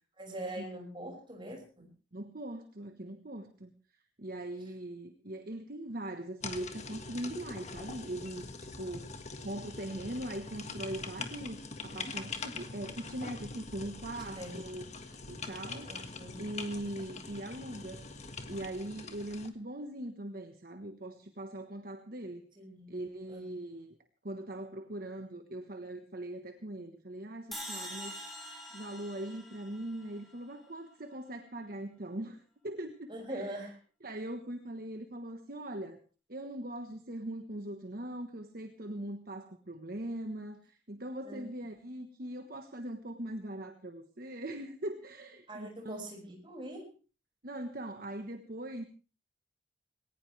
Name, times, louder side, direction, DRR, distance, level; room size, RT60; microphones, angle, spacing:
voice 1, 0.2-1.9 14.2-14.5 15.9-16.4 22.6-22.9 23.3-23.4 33.1-33.7 41.2-41.4 45.5-46.9, right 1 dB, 25° right, 1 dB, 6.0 m, -43 dB
voice 2, 2.1-3.7 4.2-9.1 9.4-14.9 15.3-15.9 16.4-18.0 18.5-22.4 22.9-24.0 24.2-28.2 28.6-33.7 34.0-36.0 36.3-46.1 47.4-48.9, right 1 dB, 50° right, 7 dB, 1.3 m, -41 dB
sound 1, 6.4-19.5, left 3 dB, 35° left, 1.7 m, -43 dB
sound 2, 27.5-30.7, equal, ahead, 5.2 m, -45 dB
20.0 x 18.5 x 3.4 m, 0.35 s
head